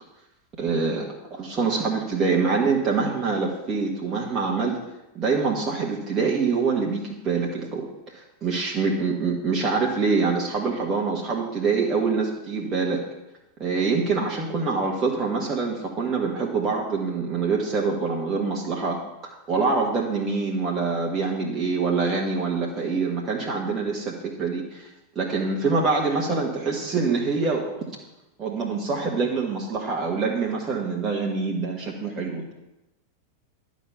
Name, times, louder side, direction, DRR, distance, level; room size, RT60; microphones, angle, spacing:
voice 1, 0.6-4.8 5.1-13.0 13.6-19.0 19.5-24.9 25.1-27.9 28.4-32.5, right 4 dB, 25° right, -3 dB, 1.6 m, -25 dB
12.0 x 5.2 x 7.1 m, 0.96 s
figure-of-eight pair, 90°, 0 cm